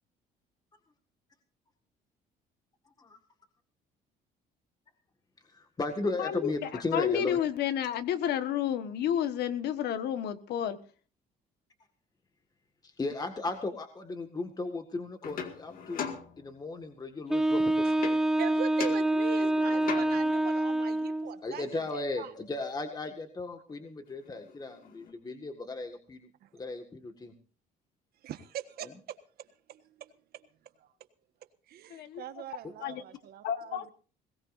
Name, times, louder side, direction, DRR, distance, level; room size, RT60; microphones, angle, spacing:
voice 1, 5.5-7.4 12.8-17.9 21.4-26.2 26.5-27.3, left 3 dB, 25° left, 6 dB, 1.8 m, -36 dB
voice 2, 6.2-10.8 31.9-32.2 32.8-33.0 33.4-33.8, left 10 dB, 75° left, 11 dB, 1.5 m, -31 dB
sound 1, 15.2-16.9 18.0-18.5 18.8-20.4 23.7-23.8 24.1-25.1, left 6 dB, 55° left, 2.1 m, -40 dB
Wind instrument woodwind instrument, 17.3-21.4, right 1 dB, 5° right, 0.7 m, -27 dB
voice 3, 17.6-17.9 18.4-22.3 23.0-23.1 26.4-26.5 28.2-30.5 30.8-30.9 31.7-33.9, right 11 dB, 65° right, 9 dB, 1.5 m, -42 dB
21.0 x 18.0 x 2.6 m, 0.38 s
cardioid pair, 110°, 17 cm